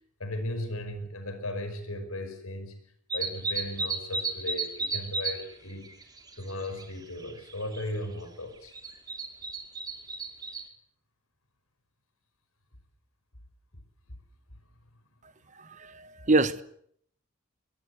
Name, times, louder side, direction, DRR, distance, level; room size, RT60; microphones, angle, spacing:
voice 1, 0.2-2.8 3.1-5.9 6.4-8.7, left 1 dB, 90° left, 5.4 m, -36 dB
sound 1, 3.1-5.4 5.7-6.9 7.2-7.8 8.7-10.6, right 3 dB, 20° right, 2.5 m, -33 dB
voice 2, 15.6-16.6, right 2 dB, 35° right, 1.0 m, -26 dB
23.0 x 22.0 x 8.0 m
head